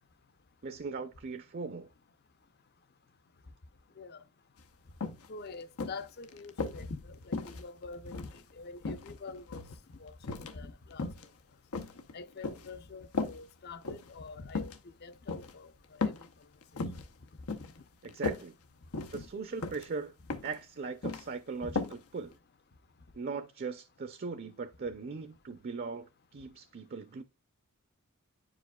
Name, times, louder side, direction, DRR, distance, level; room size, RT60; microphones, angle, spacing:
voice 1, 0.6-1.9 18.0-18.5 19.1-20.1 20.4-22.4 23.2-27.2, right 4 dB, 45° right, 0.5 m, -39 dB
sound 1, 4.6-4.7 5.0-5.3 5.8-6.8 7.3-8.4 8.8-9.8 10.2-10.6 10.9-11.3 11.7-12.7 13.1-13.4 13.8-14.1 14.5-14.8 15.3-15.5 16.0-16.3 16.6-17.0 17.5-17.8 18.0-18.4 18.9-19.3 19.6-19.9 20.3-20.6 20.8-21.2 21.8-22.0 22.3-22.4, left 3 dB, 90° left, 0.7 m, -36 dB
voice 2, 5.3-9.6 10.0-11.1 12.1-14.7 15.0-15.7 16.0-16.2 16.7-17.0 17.5-17.7 19.1-19.3 21.6-21.8, left 3 dB, 45° left, 0.5 m, -45 dB
9.8 x 4.9 x 2.2 m
head